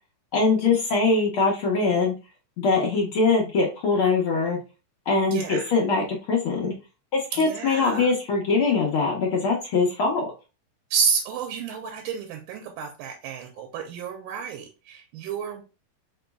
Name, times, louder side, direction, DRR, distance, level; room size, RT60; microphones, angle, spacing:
voice 1, 0.3-2.1 2.6-4.6 5.1-6.7 7.1-10.2, left 4 dB, 75° left, -3 dB, 1.2 m, -22 dB
voice 2, 5.3-5.6 7.4-8.1 10.9-15.6, right 6 dB, 85° right, 3 dB, 2.2 m, -30 dB
5.0 x 3.9 x 2.3 m, 0.31 s
omnidirectional pair, 3.8 m